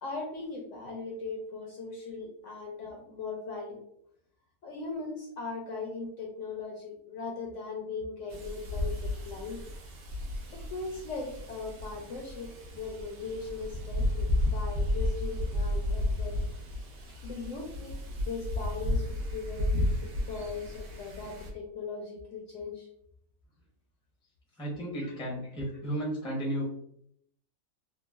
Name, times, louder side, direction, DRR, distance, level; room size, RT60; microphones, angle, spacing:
voice 1, 0.0-3.8 4.6-9.7 10.5-16.3 17.2-22.9 25.0-25.1, left 4 dB, 70° left, 0 dB, 0.8 m, -39 dB
Wind, 8.3-21.5, left 1 dB, 65° right, 0.8 m, -33 dB
voice 2, 24.6-26.7, right 1 dB, 5° left, -3 dB, 0.4 m, -33 dB
3.0 x 2.1 x 2.2 m, 0.70 s
omnidirectional pair, 1.6 m